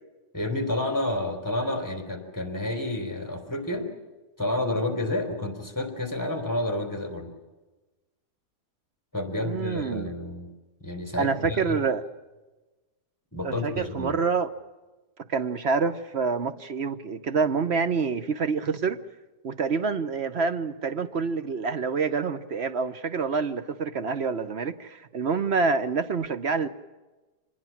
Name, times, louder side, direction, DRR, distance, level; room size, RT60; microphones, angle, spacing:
voice 1, 0.3-3.9 4.4-7.3 9.1-10.5 10.8-11.7 13.3-14.2, left 1 dB, 10° left, 6 dB, 3.6 m, -30 dB
voice 2, 9.4-10.1 11.2-12.0 13.4-14.5 15.3-19.0 19.4-26.7, right 5 dB, 50° right, 11 dB, 0.9 m, -27 dB
25.5 x 20.5 x 7.2 m, 1.2 s
omnidirectional pair, 1.8 m